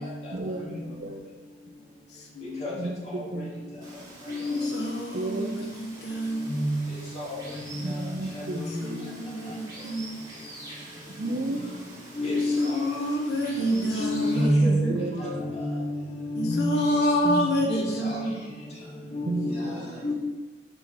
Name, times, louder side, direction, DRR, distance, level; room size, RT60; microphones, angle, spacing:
voice 1, 0.3-1.3 2.6-3.7 5.1-5.7 7.8-8.6 8.9-9.1 9.5-9.6 10.9-11.8 14.9-15.3 15.6-15.7 17.2-17.5 19.3-19.9, right 2 dB, 50° right, 5 dB, 0.6 m, -33 dB
voice 2, 2.1-2.6 4.5-6.6 8.8-10.2 12.3-15.0 16.3-18.4, equal, 70° left, 0 dB, 1.1 m, -28 dB
Water, 3.8-14.5, right 1 dB, 20° right, 2.0 m, -46 dB
voice 3, 4.3-4.7 6.5-6.8 7.2-7.4 7.9-8.0 8.5-8.9 12.2-12.8 13.9-16.9 17.7-18.2 19.1-19.7 20.0-20.1, left 1 dB, 40° left, -6 dB, 2.2 m, -28 dB
5.5 x 5.5 x 4.6 m, 1.3 s
head